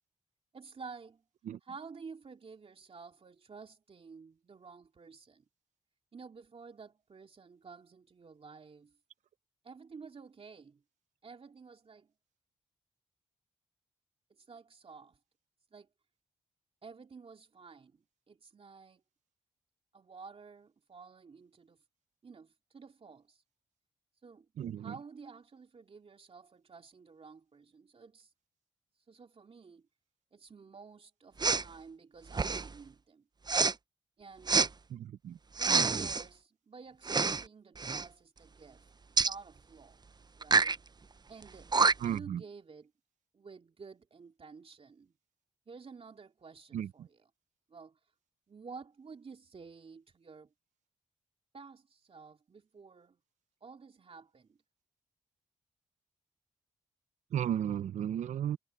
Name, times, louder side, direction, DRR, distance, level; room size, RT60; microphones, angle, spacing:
voice 1, 0.5-1.2 1.6-5.4 6.1-9.0 9.6-10.8 11.2-12.1 14.4-15.2 15.7-15.9 16.8-19.0 19.9-21.8 22.2-23.4 24.2-24.5 24.8-28.3 29.1-29.9 30.3-33.2 34.2-34.7 35.6-40.0 40.3-40.8 41.3-41.7 42.0-42.9 43.3-45.1 45.7-47.3 47.7-48.0 48.5-50.5 51.5-53.2 53.6-54.6, right 5 dB, 50° right, 2.9 m, -51 dB
voice 2, 24.6-24.9 34.9-35.0 35.2-35.4 42.0-42.4 46.7-46.9 57.3-58.6, right 10 dB, 75° right, 1.0 m, -34 dB
Respiratory sounds, 31.4-31.7 32.3-32.7 33.5-33.7 34.5-34.7 35.6-36.2 37.0-37.4 37.8-38.1 39.2-39.4 40.4-40.8 41.4-41.5 41.7-42.2, right 4 dB, 35° right, 0.8 m, -27 dB
supercardioid pair, 40°, 12 cm